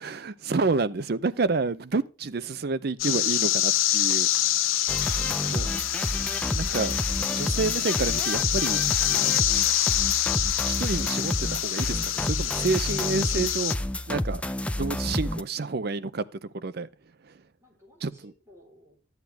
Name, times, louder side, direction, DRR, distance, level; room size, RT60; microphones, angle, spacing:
voice 1, 0.0-4.3 5.5-5.7 6.5-7.0 7.3-9.4 10.6-13.8 14.1-14.4 14.8-16.2 16.5-16.9 17.2-17.3 18.0-18.1, right 4 dB, 50° right, 0.5 m, -29 dB
sound 1, 3.0-13.7, left 13 dB, 85° left, 0.6 m, -26 dB
sound 2, 4.9-15.4, left 1 dB, 5° left, 0.4 m, -30 dB
voice 2, 4.9-5.7 9.4-9.6 17.6-19.1, equal, 15° right, 4.0 m, -57 dB
Percussion, 5.0-9.8, left 10 dB, 50° left, 1.9 m, -51 dB
13.0 x 8.2 x 3.4 m
head